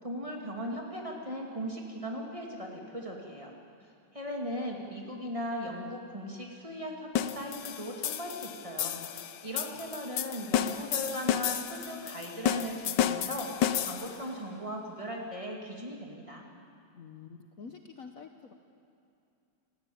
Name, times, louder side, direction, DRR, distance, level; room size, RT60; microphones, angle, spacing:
voice 1, 0.0-3.5 4.1-16.4, equal, 15° right, -1 dB, 2.6 m, -38 dB
sound 1, 7.2-14.3, left 10 dB, 70° left, 1.4 m, -32 dB
voice 2, 17.0-18.5, left 5 dB, 55° left, 5 dB, 1.3 m, -48 dB
28.5 x 15.0 x 8.8 m, 2.5 s
omnidirectional pair, 2.0 m